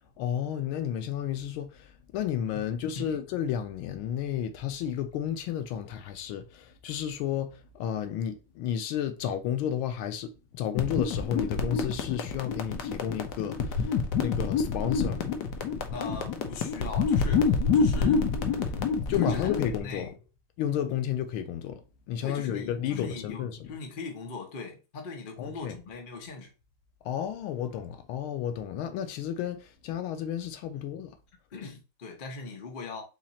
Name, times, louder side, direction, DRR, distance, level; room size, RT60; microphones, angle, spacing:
voice 1, 0.2-15.3 19.1-20.1 20.6-21.8 22.1-23.7 25.4-25.8 27.0-31.1, left 10 dB, 85° left, 1.5 m, -32 dB
voice 2, 2.5-3.2 15.9-19.5 19.8-20.2 22.2-26.5 30.7-30.9 31.5-33.0, left 4 dB, 40° left, 0.7 m, -40 dB
sound 1, 10.8-19.8, left 5 dB, 70° left, 1.1 m, -27 dB
4.4 x 2.4 x 4.1 m
omnidirectional pair, 2.2 m